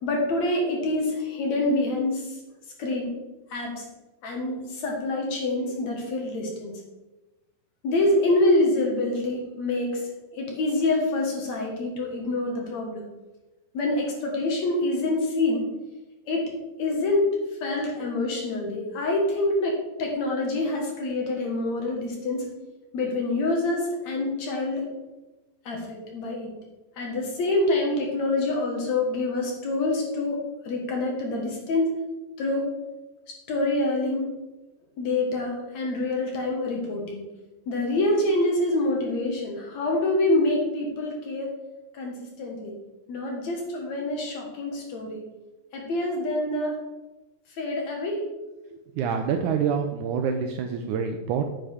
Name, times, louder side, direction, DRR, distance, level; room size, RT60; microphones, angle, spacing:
voice 1, 0.0-2.3 2.8-3.2 3.5-3.8 4.2-6.7 7.8-10.0 10.3-13.0 13.7-15.7 16.3-16.5 16.8-22.5 22.9-24.9 25.7-26.5 27.0-31.9 32.4-32.7 33.3-34.3 35.0-37.2 37.7-41.5 41.9-42.8 43.1-45.2 45.7-46.8 47.6-48.3, left 2 dB, 60° left, 0 dB, 2.6 m, -26 dB
voice 2, 49.0-51.4, right 6 dB, 80° right, 5 dB, 1.8 m, -26 dB
8.9 x 8.7 x 3.5 m, 1.1 s
omnidirectional pair, 4.0 m